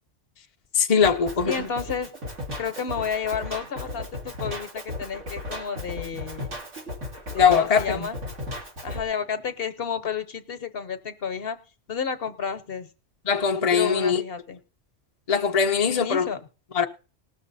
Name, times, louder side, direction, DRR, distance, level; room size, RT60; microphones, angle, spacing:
voice 1, 0.7-1.7 7.4-8.1 13.3-14.2 15.3-16.2 16.7-16.9, left 6 dB, 35° left, 0.7 m, -21 dB
Drum kit, 1.0-9.0, left 1 dB, 70° right, 3.0 m, -35 dB
voice 2, 1.5-2.1 2.6-6.5 7.3-8.2 8.8-11.6 11.9-12.9 13.7-14.6 15.8-16.4, left 6 dB, 55° left, 1.0 m, -31 dB
19.5 x 6.7 x 4.0 m
omnidirectional pair, 1.3 m